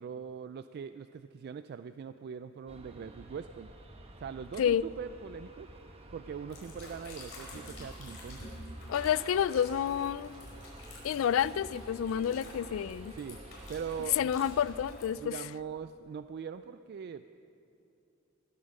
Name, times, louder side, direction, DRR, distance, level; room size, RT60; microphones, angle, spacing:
voice 1, 0.0-3.7 4.2-5.7 6.1-8.5 13.1-13.4 13.7-14.5 15.2-17.2, right 6 dB, 55° right, 11 dB, 0.3 m, -41 dB
Aircraft, 2.7-14.9, right 1 dB, 30° right, 1.1 m, -50 dB
sound 1, 6.5-15.0, left 1 dB, 70° left, 4.4 m, -49 dB
voice 2, 8.9-10.3 11.0-13.1 14.2-15.3, left 9 dB, 90° left, 20 dB, 0.3 m, -29 dB
19.0 x 8.8 x 6.5 m, 2.8 s
head